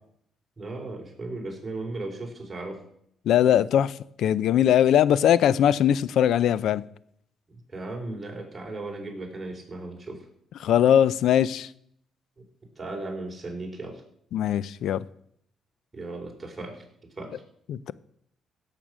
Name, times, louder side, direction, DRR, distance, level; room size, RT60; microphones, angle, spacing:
voice 1, 0.6-2.8 7.7-10.2 12.8-14.0 15.9-16.8 17.2-17.4, right 2 dB, 20° right, -1 dB, 4.4 m, -36 dB
voice 2, 3.3-3.9 4.2-6.8 10.6-11.7 14.3-15.0 17.7-17.9, left 10 dB, 75° left, 18 dB, 0.5 m, -21 dB
16.5 x 6.8 x 6.2 m, 0.69 s
cardioid pair, 90°, 0 cm